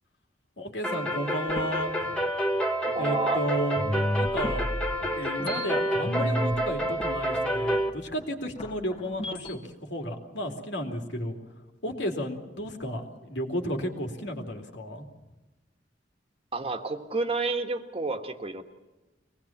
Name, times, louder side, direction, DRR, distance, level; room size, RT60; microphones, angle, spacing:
voice 1, 0.6-2.2 3.0-3.8 4.1-4.7 5.0-11.4 11.8-15.0, equal, 70° left, 3 dB, 2.8 m, -33 dB
sound 1, 0.8-7.9, right 1 dB, 5° left, 1.7 m, -29 dB
sound 2, 1.4-3.4 3.8-9.6, equal, 35° left, 2.1 m, -34 dB
voice 2, 2.8-3.4 16.5-18.6, right 3 dB, 35° right, 6 dB, 1.7 m, -30 dB
24.0 x 19.0 x 7.3 m, 1.1 s
head